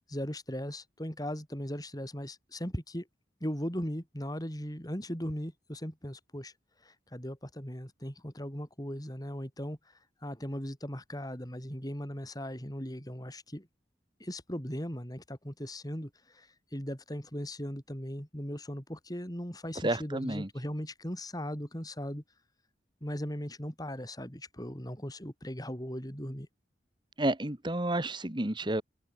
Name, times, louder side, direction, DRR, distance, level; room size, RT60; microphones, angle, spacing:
voice 1, 0.1-3.1 3.4-6.5 6.8-9.8 10.2-13.7 14.2-22.2 23.0-26.5, equal, 20° left, 7.2 m, -38 dB
voice 2, 19.8-20.5 27.2-28.8, right 1 dB, 25° right, 1.8 m, -30 dB
open air
head